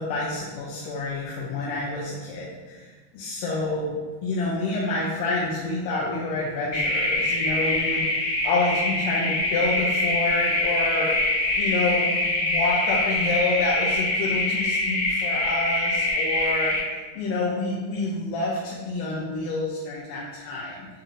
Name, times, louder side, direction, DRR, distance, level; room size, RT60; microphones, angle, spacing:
voice 1, 0.0-2.9 3.1-11.2 11.6-20.9, left 2 dB, 80° left, -6 dB, 2.1 m, -28 dB
sound 1, 6.7-16.8, left 2 dB, 60° left, 1.3 m, -24 dB
7.3 x 2.7 x 2.5 m, 1.4 s
omnidirectional pair, 4.0 m